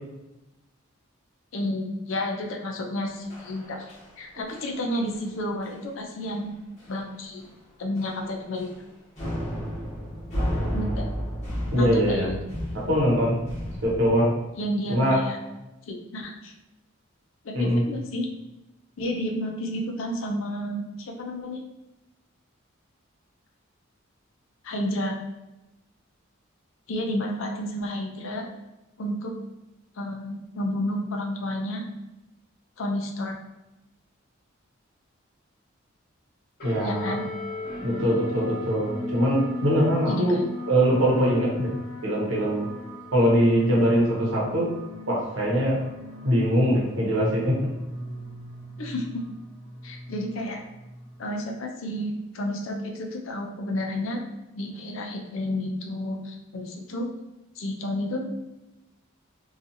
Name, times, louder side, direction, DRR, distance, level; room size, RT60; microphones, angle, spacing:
voice 1, 1.5-6.5 6.9-7.4 7.8-8.7 10.7-11.1 11.7-12.4 14.5-15.4 15.9-16.5 17.4-18.3 19.0-21.6 24.6-25.2 26.9-28.5 29.0-29.3 30.0-31.8 32.8-33.3 36.8-37.2 40.1-40.4 48.8-49.2 49.8-50.6 51.2-54.2 54.6-57.1 57.6-58.2, left 1 dB, 70° left, 2 dB, 0.5 m, -31 dB
sound 1, 3.3-4.2 4.5-4.8 5.1-5.3 5.6-5.8 6.2-6.3 6.8-7.1 7.4-7.5 8.0-8.8 9.2-14.1, equal, 35° left, 1.0 m, -33 dB
voice 2, 11.7-12.3 12.7-13.4 13.8-14.3 14.9-15.2 17.5-17.8 36.6-37.2 37.8-40.4 40.7-41.7 42.0-42.7 43.1-44.7 45.1-45.8 46.2-47.7, equal, 70° right, -4 dB, 0.9 m, -22 dB
sound 2, 36.6-51.4, left 2 dB, 50° left, 0.9 m, -37 dB
2.7 x 2.4 x 2.6 m, 0.97 s
head